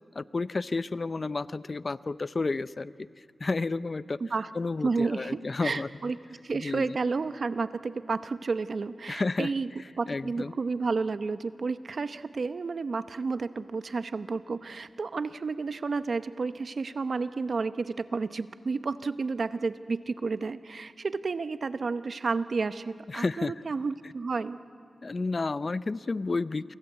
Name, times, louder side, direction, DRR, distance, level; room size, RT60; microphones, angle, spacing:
voice 1, 0.1-3.1 3.4-4.2 4.5-5.9 6.5-7.0 9.1-9.5 10.1-10.5 23.1-23.5 25.0-26.8, left 3 dB, 45° left, 16 dB, 0.6 m, -31 dB
voice 2, 4.8-6.2 6.4-9.7 10.0-24.6, right 4 dB, 65° right, 12 dB, 0.8 m, -31 dB
28.0 x 24.0 x 8.1 m, 2.4 s
cardioid pair, 55°, 0 cm